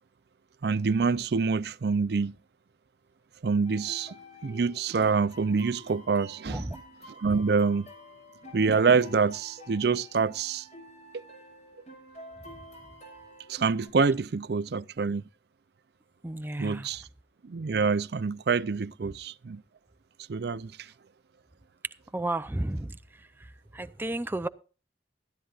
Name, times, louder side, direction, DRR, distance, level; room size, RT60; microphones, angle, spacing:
voice 1, 0.6-2.3 3.4-4.2 4.4-6.7 7.2-7.9 8.5-10.7 11.1-11.2 13.5-15.2 16.6-17.0 17.4-19.6 20.3-20.9, right 5 dB, 60° right, 0.5 m, -26 dB
sound 1, 3.6-13.9, equal, 40° left, 5.7 m, -49 dB
voice 2, 6.5-6.8 16.2-16.9 22.1-23.0 23.7-24.5, right 1 dB, 10° right, 0.5 m, -32 dB
18.0 x 13.0 x 2.4 m
head